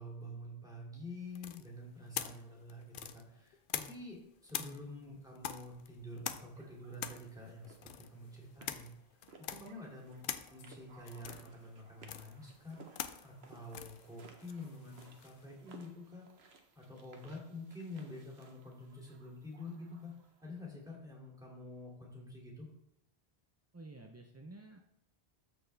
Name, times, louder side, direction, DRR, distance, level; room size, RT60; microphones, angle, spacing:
voice 1, 0.0-7.7 8.1-8.9 9.4-10.2 10.5-12.8 13.2-16.3 16.7-20.1 20.4-22.7, left 1 dB, 5° right, -4 dB, 2.4 m, -48 dB
sound 1, 1.3-4.2 4.5-15.4, left 9 dB, 60° left, 0.7 m, -45 dB
voice 2, 4.6-5.3 23.7-24.8, right 2 dB, 25° right, 3 dB, 0.3 m, -52 dB
sound 2, 6.5-20.6, right 4 dB, 75° right, 1.2 m, -61 dB
13.0 x 4.5 x 3.3 m, 0.86 s
omnidirectional pair, 1.1 m